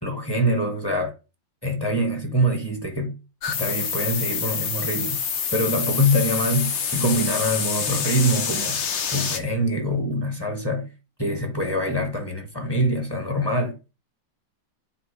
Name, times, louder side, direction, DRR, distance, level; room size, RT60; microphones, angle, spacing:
voice 1, 0.0-1.1 1.6-3.1 3.5-5.2 5.5-8.8 9.1-10.9 11.2-13.7, equal, 15° left, 1.2 m, -24 dB
sound 1, 3.4-9.4, left 7 dB, 65° left, 0.7 m, -27 dB
8.4 x 3.5 x 4.9 m
omnidirectional pair, 2.1 m